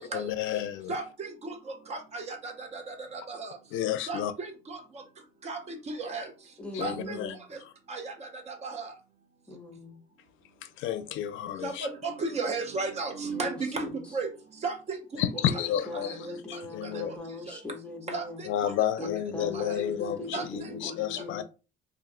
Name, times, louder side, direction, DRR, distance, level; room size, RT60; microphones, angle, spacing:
voice 1, 0.0-0.9 3.7-4.3 6.7-7.3 10.8-11.9 15.2-17.1 18.5-21.4, left 10 dB, 85° left, 0.4 m, -31 dB
voice 2, 0.9-3.6 4.1-4.8 5.4-6.3 6.8-7.2 7.9-8.9 11.6-14.3 14.6-15.6 15.9-16.2 16.5-17.0 17.5-17.6 18.1-18.7 19.5-19.8 20.3-20.9, right 3 dB, 35° right, 0.5 m, -35 dB
voice 3, 6.6-7.4 9.5-10.0 13.3-13.5 15.3-18.4 19.0-21.4, left 2 dB, 5° left, 0.7 m, -40 dB
2.5 x 2.1 x 3.7 m
cardioid pair, 155°, 20 cm